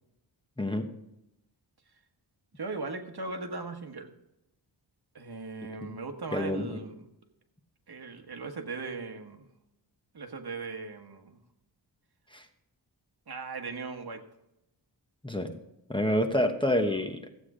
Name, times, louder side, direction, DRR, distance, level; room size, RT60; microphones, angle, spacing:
voice 1, 0.6-0.9 5.8-6.0 6.3-6.8 12.3-12.5 15.2-15.5 15.9-17.3, left 1 dB, 10° left, 5 dB, 1.0 m, -28 dB
voice 2, 2.5-4.1 5.1-7.1 7.9-9.4 10.1-11.4 13.3-14.2, right 3 dB, 60° right, 5 dB, 1.5 m, -38 dB
15.0 x 8.3 x 4.9 m, 0.86 s
wide cardioid pair, 105°, 44 cm